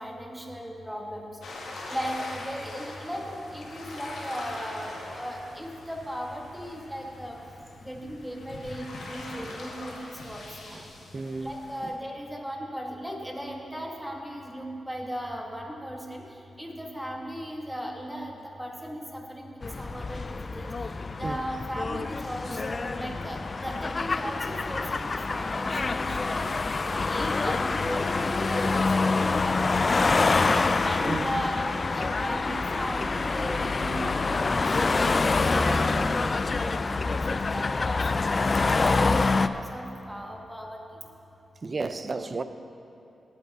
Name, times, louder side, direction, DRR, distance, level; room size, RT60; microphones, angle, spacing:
voice 1, 0.0-1.3 1.9-7.4 7.8-10.8 11.4-16.2 16.6-18.3 18.6-19.5 19.8-20.9 21.2-26.5 26.9-30.2 30.8-38.4 38.8-41.0, equal, 5° right, 1.5 m, -37 dB
sound 1, 1.4-11.9, left 2 dB, 85° left, 2.1 m, -42 dB
voice 2, 11.1-11.5 21.2-21.4 31.1-31.3 41.6-42.4, right 3 dB, 35° right, 0.5 m, -32 dB
sound 2, 19.6-39.5, left 3 dB, 35° left, 0.3 m, -26 dB
18.5 x 8.3 x 4.2 m
wide cardioid pair, 100°, 0 cm